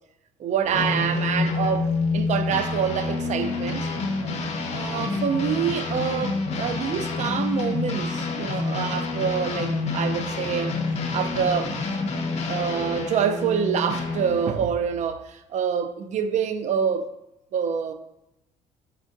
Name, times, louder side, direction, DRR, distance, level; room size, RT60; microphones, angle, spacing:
voice 1, 0.4-3.9 4.7-10.8 11.1-11.7 12.5-17.1 17.5-17.9, right 7 dB, 45° right, 0.4 m, -26 dB
sound 1, 0.6-14.7, left 1 dB, 65° right, 1.2 m, -45 dB
sound 2, 0.7-14.5, left 3 dB, 45° left, 0.6 m, -28 dB
4.3 x 2.5 x 2.5 m
supercardioid pair, 70°, 16 cm